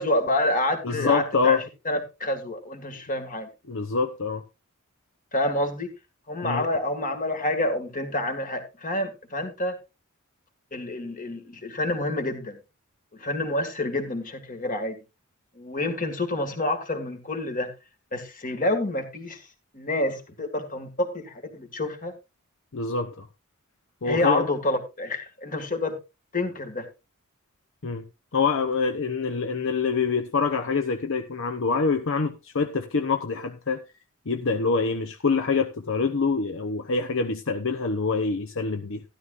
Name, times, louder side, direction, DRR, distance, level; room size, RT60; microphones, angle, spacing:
voice 1, 0.0-3.5 5.3-5.9 6.3-9.8 10.7-12.6 13.1-15.0 15.6-17.7 18.1-19.4 19.7-22.1 24.0-26.0 26.3-26.9, left 1 dB, 40° left, 2.0 m, -28 dB
voice 2, 0.8-1.6 3.7-4.4 6.4-6.6 22.7-23.3 24.0-24.5 27.8-28.0 28.3-33.8 34.3-39.0, left 4 dB, 65° left, 0.8 m, -25 dB
13.0 x 12.5 x 2.5 m
head